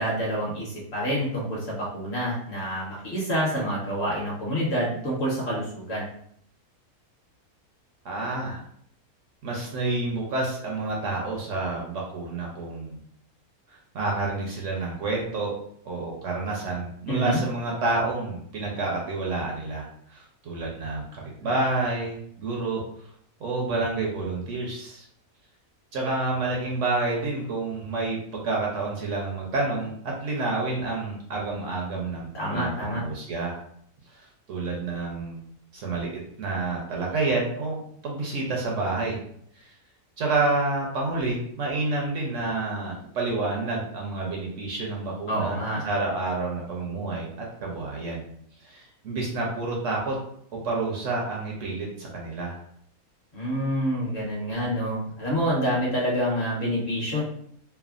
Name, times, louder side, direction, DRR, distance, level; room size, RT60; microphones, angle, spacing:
voice 1, 0.0-6.1 17.1-17.4 32.3-33.0 45.3-45.8 53.3-57.2, equal, 50° left, -5 dB, 1.0 m, -27 dB
voice 2, 8.0-8.6 9.4-13.0 13.9-15.5 15.8-22.8 23.4-25.1 25.9-33.6 34.5-35.4 35.7-36.1 36.4-37.8 38.0-39.2 39.6-39.7 40.2-45.6 45.8-47.3 47.6-48.3 48.6-50.2 50.5-52.6, right 3 dB, 65° right, -2 dB, 0.9 m, -29 dB
3.2 x 2.1 x 2.4 m, 0.66 s
omnidirectional pair, 1.6 m